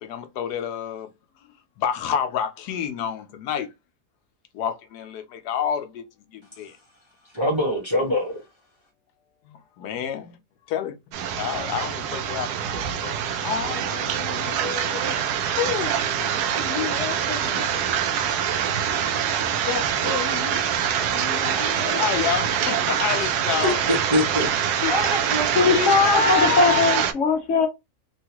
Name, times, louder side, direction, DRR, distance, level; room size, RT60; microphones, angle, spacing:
voice 1, 0.0-1.1 1.8-3.7 4.5-6.0 6.3-6.8 9.4-10.4 10.7-11.0 11.4-12.5 12.9-13.1 13.4-15.2 15.6-15.9 16.2-17.9 19.7-20.6 21.0-23.8 24.8-24.9 25.7-27.0, left 8 dB, 85° left, 1.2 m, -29 dB
voice 2, 7.3-8.4 23.6-24.5 24.9-25.5, left 1 dB, 20° right, 0.8 m, -24 dB
sound 1, 11.1-27.1, right 8 dB, 75° right, 1.1 m, -25 dB
voice 3, 25.5-27.7, left 4 dB, 55° left, 1.0 m, -20 dB
3.7 x 2.3 x 2.9 m
omnidirectional pair, 1.7 m